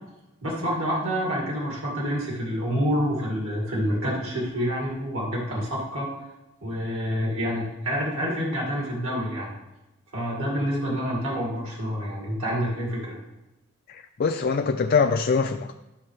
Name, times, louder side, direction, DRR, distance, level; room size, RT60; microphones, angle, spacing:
voice 1, 0.4-6.1 6.6-9.5 10.1-13.2, equal, 70° right, -3 dB, 2.2 m, -27 dB
voice 2, 13.9-15.7, left 5 dB, 45° left, 6 dB, 0.4 m, -23 dB
12.5 x 6.4 x 3.3 m, 1.0 s
head